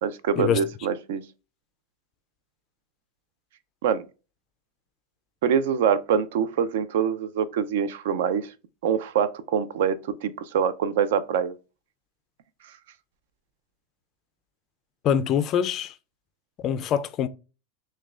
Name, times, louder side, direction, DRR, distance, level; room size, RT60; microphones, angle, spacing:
voice 1, 0.0-1.2 3.8-4.1 5.4-8.5 8.8-11.5, right 7 dB, 70° right, 0.4 m, -25 dB
voice 2, 15.0-15.9 16.6-17.3, left 9 dB, 30° left, 0.3 m, -24 dB
6.2 x 2.2 x 2.4 m
supercardioid pair, 165°, 0 cm